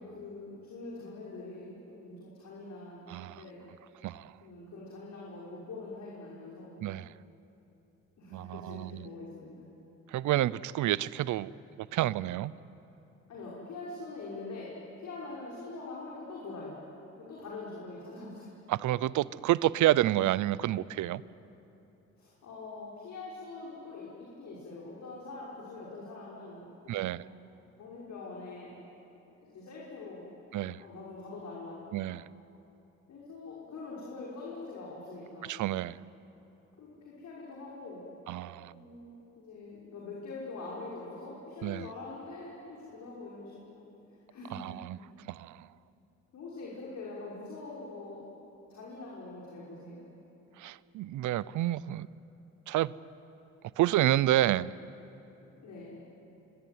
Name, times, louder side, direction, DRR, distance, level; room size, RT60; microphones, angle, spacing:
voice 1, 0.0-3.0 3.3-3.6 4.4-6.8 8.2-9.5 13.3-14.7 15.0-16.7 17.2-18.5 22.2-24.1 24.4-27.3 27.8-28.7 29.4-30.3 30.8-31.9 33.1-35.6 36.8-38.1 38.7-43.9 44.3-44.7 46.3-48.2 48.7-50.0 55.6-55.9, left 3 dB, 65° left, 5.7 m, -44 dB
voice 2, 3.1-3.4 4.0-4.3 6.8-7.1 8.3-9.1 10.1-11.5 11.8-12.5 18.7-21.2 26.9-27.2 30.5-30.8 31.9-32.3 35.4-36.0 38.3-38.7 41.6-41.9 44.5-45.0 45.3-45.7 50.6-52.1 52.7-52.9 53.8-54.7, right 14 dB, 75° right, 0.7 m, -29 dB
26.0 x 23.5 x 9.5 m
cardioid pair, 90°, 30 cm